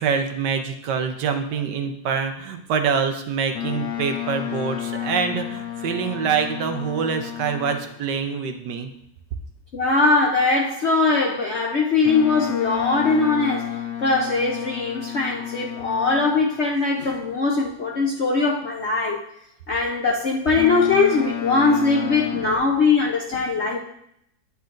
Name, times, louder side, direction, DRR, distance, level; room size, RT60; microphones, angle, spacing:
voice 1, 0.0-8.9 22.3-22.6, right 6 dB, 70° right, 7 dB, 1.3 m, -25 dB
Boat Water vehicle, 3.5-8.1 12.0-16.6 20.6-22.6, left 11 dB, 75° left, 1.5 m, -31 dB
voice 2, 9.7-19.2 19.7-23.8, left 3 dB, 55° left, -1 dB, 0.7 m, -21 dB
9.5 x 8.0 x 2.6 m, 0.74 s
omnidirectional pair, 2.0 m